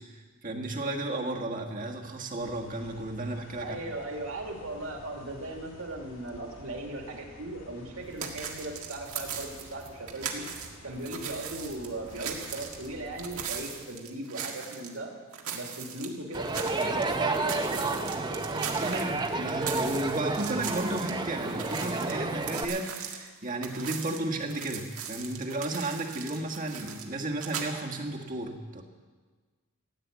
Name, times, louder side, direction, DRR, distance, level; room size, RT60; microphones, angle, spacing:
voice 1, 0.0-3.8 18.7-28.8, right 2 dB, 40° right, 2 dB, 1.5 m, -33 dB
sound 1, 2.4-13.6, left 1 dB, 65° left, 3.0 m, -51 dB
voice 2, 3.6-10.4 10.8-15.1 15.5-18.1, right 2 dB, 65° right, 1 dB, 2.6 m, -38 dB
sound 2, 8.2-10.7 11.0-15.0 15.3-17.0 17.3-21.1 21.4-27.7, right 7 dB, 85° right, 1.8 m, -39 dB
Crowd, 16.3-22.7, right 3 dB, 20° right, 0.8 m, -31 dB
15.0 x 9.6 x 8.2 m, 1.4 s
head